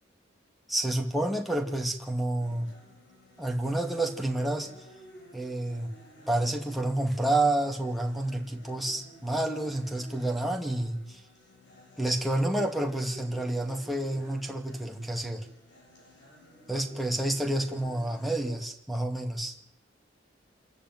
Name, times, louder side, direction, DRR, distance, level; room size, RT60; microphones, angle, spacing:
voice 1, 0.7-2.7 3.4-4.7 5.3-5.9 6.3-11.2 12.0-15.5 16.7-19.5, right 1 dB, ahead, 2 dB, 2.5 m, -29 dB
sound 1, 2.4-18.4, equal, 65° left, 7.7 m, -54 dB
27.0 x 14.0 x 9.6 m, 0.78 s
head